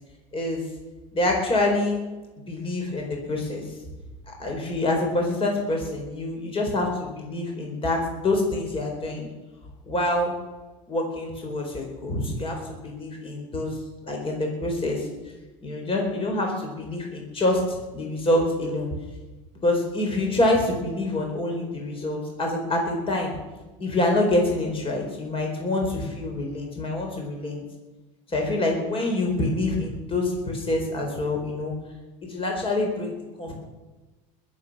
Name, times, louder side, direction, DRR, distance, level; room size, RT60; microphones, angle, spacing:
voice 1, 0.3-0.6 1.1-2.0 2.5-3.7 4.4-9.3 9.9-10.3 10.9-13.8 14.1-15.3 15.6-18.9 19.6-23.3 23.8-27.6 28.3-31.7 32.2-33.5, left 2 dB, 30° left, 1 dB, 4.5 m, -26 dB
21.0 x 7.7 x 7.5 m, 1.2 s
supercardioid pair, 95°, 18 cm